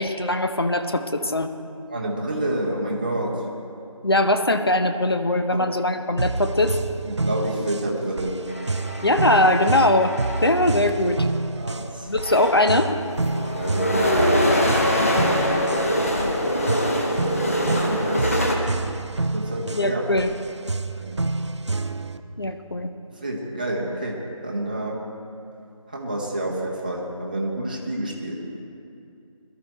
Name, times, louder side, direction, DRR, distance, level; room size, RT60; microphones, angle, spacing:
voice 1, 0.0-1.5 4.0-6.7 9.0-10.2 10.4-11.3 12.1-12.9 19.7-20.3 22.4-22.9, left 1 dB, 45° left, 7 dB, 0.8 m, -21 dB
voice 2, 1.9-3.4 5.5-5.6 7.1-8.4 11.6-12.1 13.5-14.7 17.9-18.4 19.3-20.1 20.9-21.2 23.2-25.0 25.9-28.3, right 1 dB, 15° right, -3 dB, 1.0 m, -28 dB
sound 1, 6.2-22.2, right 3 dB, 55° right, 0.6 m, -28 dB
sound 2, 8.5-10.7 11.6-11.7 12.1-18.5, left 1 dB, 25° left, 1.2 m, -24 dB
22.0 x 12.5 x 4.3 m, 2.6 s
figure-of-eight pair, 170°, 18 cm